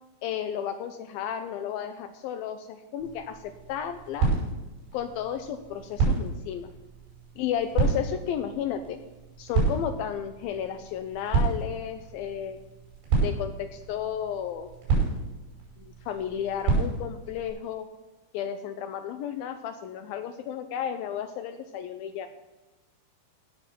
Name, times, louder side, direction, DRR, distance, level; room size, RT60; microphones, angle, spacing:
voice 1, 0.2-4.3 4.9-6.7 7.4-9.0 9.4-12.6 13.2-14.7 15.8-17.9 18.3-22.3, left 9 dB, 80° left, 8 dB, 2.2 m, -33 dB
sound 1, 3.0-17.5, right 4 dB, 85° right, 7.2 m, -30 dB
16.5 x 6.4 x 6.0 m, 1.1 s
omnidirectional pair, 4.8 m